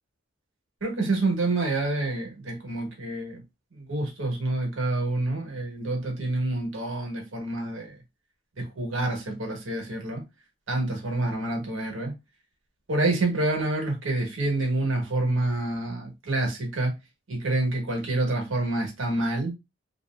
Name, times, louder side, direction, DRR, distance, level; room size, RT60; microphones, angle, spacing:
voice 1, 0.8-3.4 3.7-8.0 8.6-10.2 10.7-12.1 12.9-16.9 17.3-19.5, right 2 dB, 90° right, 1.2 m, -27 dB
2.9 x 2.7 x 2.3 m
head